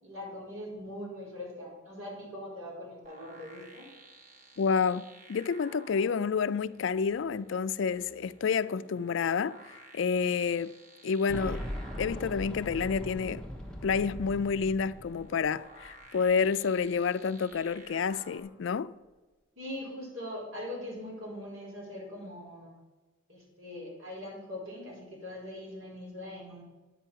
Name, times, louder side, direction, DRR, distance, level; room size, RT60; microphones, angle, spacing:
voice 1, 0.0-3.9 19.6-22.7 23.3-26.6, left 1 dB, 90° right, 4.5 m, -41 dB
sound 1, 3.0-18.4, right 2 dB, 35° right, 1.4 m, -54 dB
voice 2, 4.6-9.6 9.9-10.7 11.0-11.6 12.0-13.5 13.8-18.9, left 5 dB, 65° left, 0.4 m, -29 dB
Boom, 11.3-16.0 16.3-16.4 17.5-17.6, equal, 5° left, 0.9 m, -40 dB
9.8 x 9.0 x 5.7 m
head